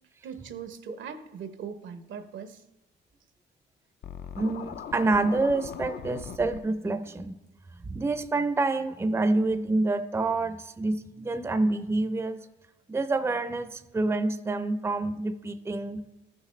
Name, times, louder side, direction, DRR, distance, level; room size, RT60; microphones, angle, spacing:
voice 1, 0.2-2.6, right 7 dB, 75° right, 10 dB, 0.7 m, -40 dB
Scratching (performance technique), 4.0-6.6, left 8 dB, 55° left, 0.5 m, -40 dB
voice 2, 4.4-7.3 7.8-12.4 12.9-16.0, right 2 dB, 15° right, 10 dB, 0.5 m, -27 dB
13.5 x 6.6 x 3.1 m, 0.98 s
cardioid pair, 90°, 20 cm